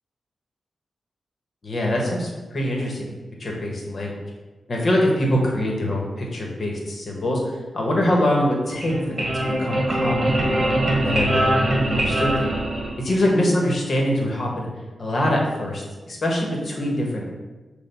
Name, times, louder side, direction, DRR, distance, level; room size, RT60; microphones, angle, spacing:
voice 1, 1.6-3.1 3.4-4.2 4.7-7.4 7.7-10.5 11.0-11.5 11.8-12.5 13.0-14.7 15.0-17.3, left 1 dB, 50° left, -1 dB, 1.4 m, -23 dB
sound 1, 8.6-13.3, right 1 dB, 35° right, 1.6 m, -22 dB
6.8 x 2.7 x 5.3 m, 1.2 s
cardioid pair, 80°, 0 cm